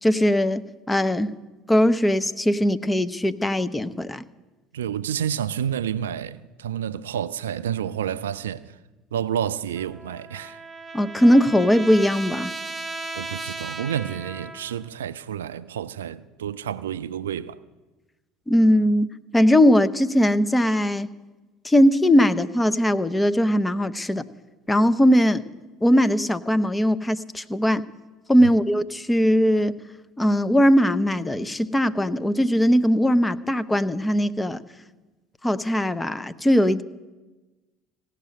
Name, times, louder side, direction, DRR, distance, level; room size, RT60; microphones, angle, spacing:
voice 1, 0.0-1.3 1.7-4.2 10.9-12.5 18.5-19.1 19.3-21.1 21.6-24.2 24.7-25.4 25.8-27.8 28.3-29.7 30.2-34.6 35.4-36.8, equal, 10° left, 0.7 m, -20 dB
voice 2, 4.7-8.8 9.1-10.6 13.1-17.6 28.4-28.5, right 9 dB, 80° right, 0.4 m, -29 dB
Trumpet, 9.7-14.9, right 2 dB, 20° right, 1.3 m, -36 dB
16.5 x 6.5 x 9.0 m
hypercardioid pair, 65°, 0 cm